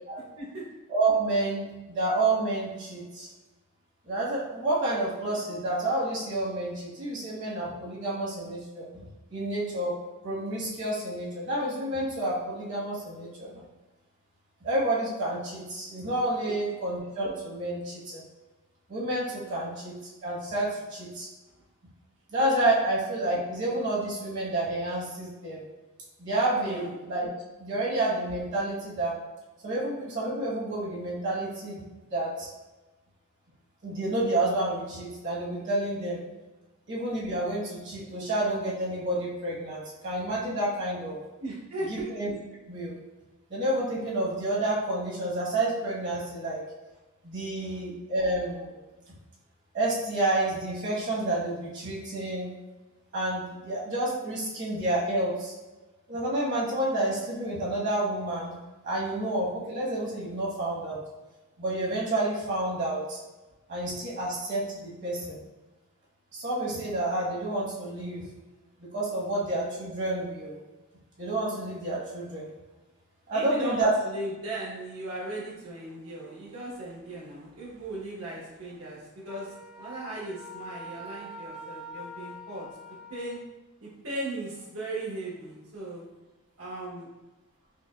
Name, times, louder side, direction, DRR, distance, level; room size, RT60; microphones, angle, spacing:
voice 1, 0.9-3.3 4.1-8.9 9.3-9.9 10.2-13.6 14.6-18.2 18.9-19.9 20.2-21.3 22.3-25.6 26.2-27.3 27.6-29.1 29.6-31.8 32.1-32.5 33.8-36.2 36.9-41.2 41.9-42.3 42.7-43.0 43.5-46.7 47.2-48.8 49.7-52.5 53.1-55.5 56.1-58.5 58.8-61.0 61.6-63.2 63.7-65.4 66.3-68.2 68.8-70.6 71.2-72.5 73.3-73.9, right 1 dB, 55° right, -5 dB, 1.3 m, -29 dB
voice 2, 41.4-42.1 47.7-47.8 73.3-82.7 83.1-83.4 83.8-86.0 86.6-87.1, right 1 dB, 80° right, -6 dB, 1.3 m, -37 dB
Wind instrument woodwind instrument, 79.3-83.4, equal, ahead, 0.3 m, -44 dB
5.2 x 2.3 x 2.4 m, 1.1 s
head